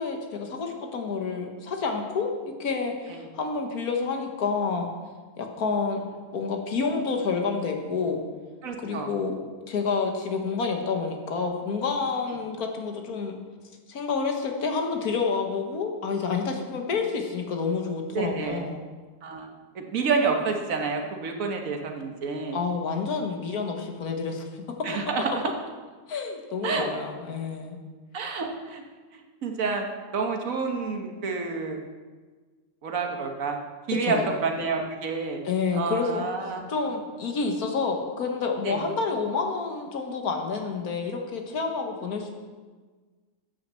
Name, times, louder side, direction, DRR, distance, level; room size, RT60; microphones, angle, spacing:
voice 1, 0.0-2.3 2.6-4.9 5.4-6.1 6.3-8.2 8.8-9.4 9.7-13.4 13.9-18.9 22.5-24.6 26.1-27.8 33.9-34.3 35.4-36.3 36.7-42.3, left 4 dB, 85° left, 3 dB, 1.8 m, -29 dB
voice 2, 8.6-9.1 18.1-18.6 19.2-19.5 19.7-22.6 24.8-25.3 26.6-26.9 28.1-28.8 29.1-29.8 30.1-31.8 32.8-33.6 33.9-35.4 35.7-36.6 38.6-38.8, right 4 dB, 65° right, 3 dB, 1.6 m, -29 dB
9.7 x 6.5 x 7.5 m, 1.4 s
omnidirectional pair, 1.5 m